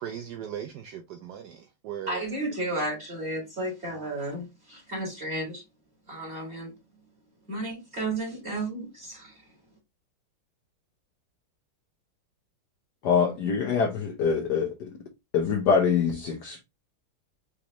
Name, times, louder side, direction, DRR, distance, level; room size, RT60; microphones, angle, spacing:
voice 1, 0.0-2.2 3.9-4.1, right 9 dB, 75° right, 0.9 m, -38 dB
voice 2, 2.1-5.6 6.1-6.7 7.5-9.3, right 1 dB, 30° right, 2.6 m, -33 dB
voice 3, 13.0-14.9 15.3-16.6, left 6 dB, 60° left, 1.2 m, -24 dB
5.1 x 3.4 x 2.9 m
omnidirectional pair, 2.3 m